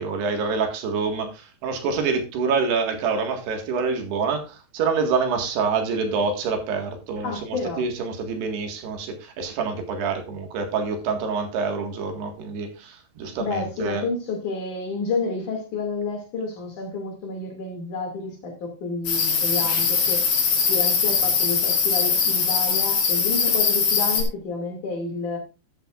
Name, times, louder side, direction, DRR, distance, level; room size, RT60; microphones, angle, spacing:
voice 1, 0.0-14.0, right 5 dB, 70° right, 3.7 m, -26 dB
voice 2, 7.2-7.8 13.4-20.3 20.7-25.4, left 4 dB, 50° left, 3.5 m, -30 dB
sound 1, 19.1-24.2, left 5 dB, 70° left, 5.1 m, -21 dB
12.5 x 12.0 x 2.5 m
omnidirectional pair, 4.9 m